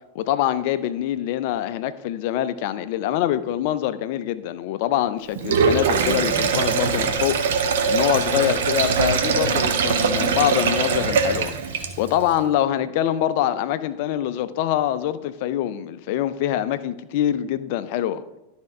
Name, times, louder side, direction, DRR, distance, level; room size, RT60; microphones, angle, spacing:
voice 1, 0.1-18.2, left 11 dB, 50° left, 13 dB, 0.4 m, -24 dB
Sink (filling or washing), 5.3-12.2, right 5 dB, 60° right, 0.8 m, -22 dB
12.0 x 4.4 x 4.7 m, 0.97 s
figure-of-eight pair, 90°, 0 cm